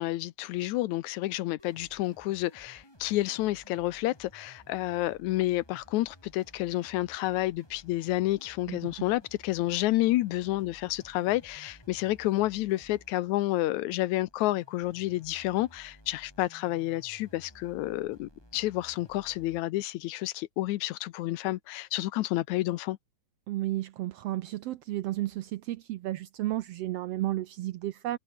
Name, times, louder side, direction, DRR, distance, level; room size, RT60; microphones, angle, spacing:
voice 1, 0.0-23.0, left 16 dB, 80° left, 2.1 m, -30 dB
sound 1, 1.6-19.6, equal, 5° left, 7.7 m, -57 dB
voice 2, 23.5-28.2, right 15 dB, 75° right, 1.5 m, -32 dB
omnidirectional pair, 3.4 m